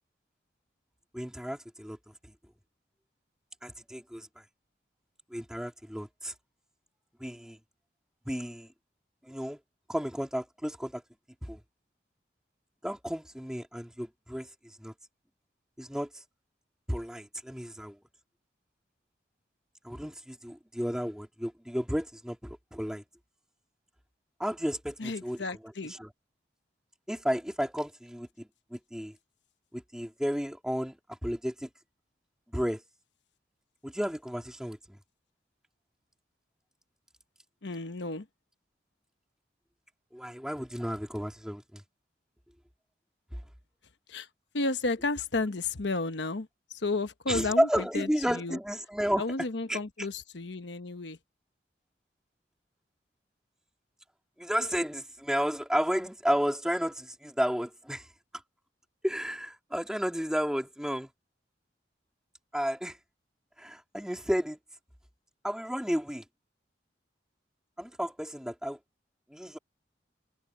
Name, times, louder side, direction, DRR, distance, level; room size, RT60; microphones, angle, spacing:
voice 1, 1.1-2.0 3.6-4.3 5.3-6.3 7.2-7.6 8.3-8.7 9.2-9.6 9.9-11.0 11.4-11.6 12.8-14.5 14.8-14.9 15.8-16.1 16.9-18.0 19.8-23.0 24.4-25.4 25.9-26.1 27.1-29.1 29.7-31.7 32.5-32.8 33.8-35.0 40.1-41.8 47.3-49.2 49.7-50.1 54.4-58.1 59.0-61.1 62.5-63.0 63.6-64.6 65.4-66.2 67.8-68.8 69.3-69.6, equal, 5° right, 2.2 m, -32 dB
voice 2, 25.0-25.9 37.6-38.2 44.1-44.3 44.5-48.6 49.2-51.2, left 3 dB, 80° left, 1.1 m, -32 dB
head